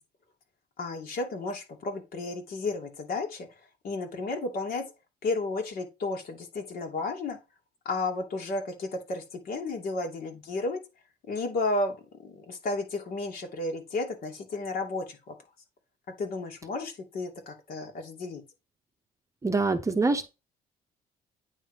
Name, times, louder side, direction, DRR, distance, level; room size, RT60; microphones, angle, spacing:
voice 1, 0.8-4.8 5.2-7.4 7.8-10.8 11.2-15.3 16.1-18.4, left 2 dB, 60° left, 2.8 m, -33 dB
voice 2, 19.4-20.3, right 3 dB, 20° right, 0.9 m, -25 dB
9.0 x 3.8 x 5.0 m
cardioid pair, 110°, 17 cm